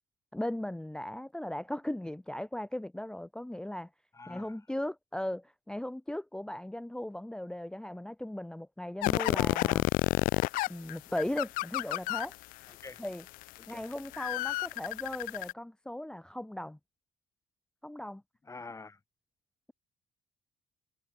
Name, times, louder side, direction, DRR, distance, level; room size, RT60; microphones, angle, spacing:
voice 1, 0.3-3.9 4.3-9.8 10.7-12.4 13.0-13.3 13.7-16.8 17.8-18.2, left 1 dB, 5° left, 0.7 m, -37 dB
voice 2, 4.1-4.6 12.8-13.0 13.6-13.9 18.5-19.0, left 3 dB, 20° left, 2.9 m, -46 dB
sound 1, 9.0-12.5 13.0-15.5, left 21 dB, 80° left, 0.6 m, -29 dB
supercardioid pair, 90°, 14 cm